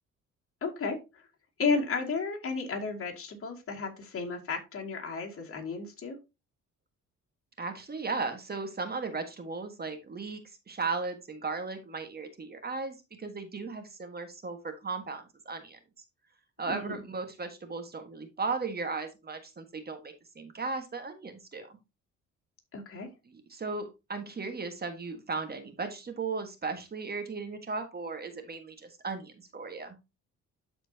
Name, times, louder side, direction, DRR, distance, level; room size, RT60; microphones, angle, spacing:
voice 1, 0.6-1.0 1.6-6.2 16.7-17.0 22.7-23.1, left 4 dB, 45° left, 1 dB, 2.5 m, -33 dB
voice 2, 7.6-15.8 16.6-21.7 23.3-29.9, right 4 dB, 30° right, 7 dB, 1.4 m, -36 dB
12.5 x 4.4 x 2.8 m, 0.25 s
cardioid pair, 90°, 30 cm